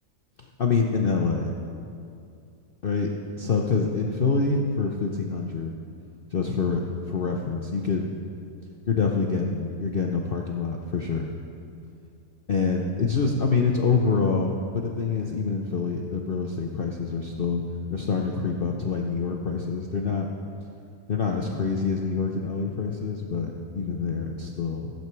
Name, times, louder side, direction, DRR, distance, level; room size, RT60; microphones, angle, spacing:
voice 1, 0.4-1.5 2.8-3.1 3.4-5.7 6.3-8.1 8.9-11.3 12.5-17.6 17.9-20.3 21.1-24.9, left 4 dB, 65° left, 1 dB, 0.5 m, -26 dB
15.0 x 8.0 x 4.6 m, 2.5 s
omnidirectional pair, 1.9 m